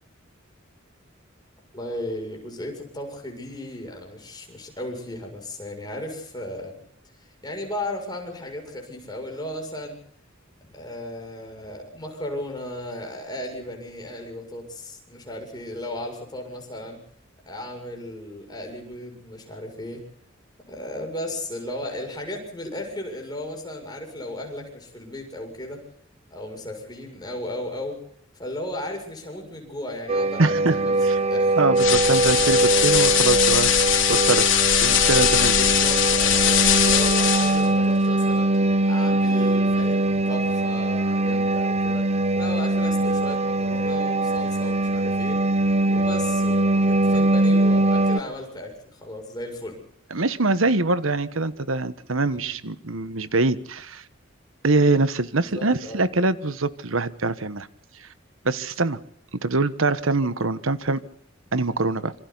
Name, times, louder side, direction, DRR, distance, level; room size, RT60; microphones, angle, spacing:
voice 1, 1.7-6.7 7.4-10.0 10.6-17.0 17.4-20.0 20.7-25.8 26.3-28.0 28.4-31.6 33.4-33.5 35.6-38.5 38.9-42.1 42.4-45.4 45.9-49.8 55.2-56.1, left 1 dB, 20° left, 2 dB, 7.0 m, -35 dB
sound 1, 30.1-48.2, right 2 dB, 35° right, 0.9 m, -22 dB
voice 2, 30.4-30.8 31.0-31.2 31.6-34.5 34.8-35.6 50.1-54.0 54.6-57.7 58.4-59.0 59.4-61.0 61.5-62.1, right 3 dB, 90° right, 13 dB, 1.3 m, -23 dB
sound 2, 31.8-37.7, left 10 dB, 65° left, 3.7 m, -20 dB
27.0 x 26.0 x 4.1 m, 0.64 s
head